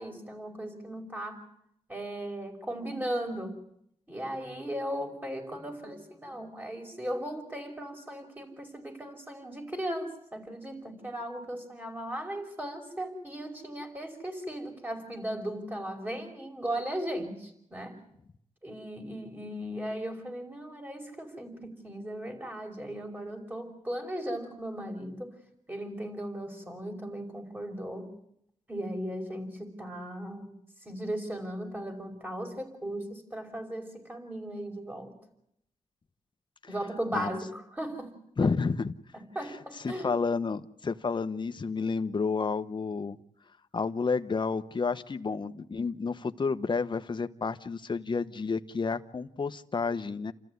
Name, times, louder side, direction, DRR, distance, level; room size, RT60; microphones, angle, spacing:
voice 1, 0.0-1.5 1.9-3.6 4.1-18.0 18.6-25.4 25.7-28.1 28.7-30.5 30.9-35.2 36.7-38.1 39.3-40.1, right 1 dB, 15° right, 4 dB, 5.6 m, -37 dB
voice 2, 38.4-38.9 39.8-43.2 43.7-50.3, left 4 dB, 40° left, 9 dB, 1.0 m, -30 dB
29.0 x 14.0 x 9.5 m, 0.75 s
wide cardioid pair, 90°, 13 cm